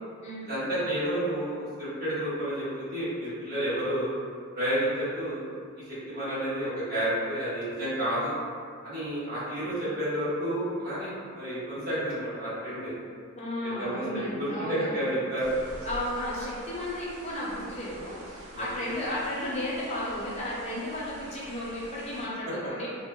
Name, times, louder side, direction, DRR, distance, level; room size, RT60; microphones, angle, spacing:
voice 1, 0.5-4.1 4.5-5.4 6.1-8.3 8.8-12.9 13.6-15.5 18.5-18.8, right 1 dB, 45° right, -14 dB, 1.1 m, -30 dB
voice 2, 13.3-15.1 15.8-22.9, left 1 dB, 30° left, -6 dB, 0.5 m, -34 dB
sound 1, 15.4-22.3, right 1 dB, 75° right, 0.4 m, -46 dB
2.9 x 2.0 x 2.2 m, 2.2 s
head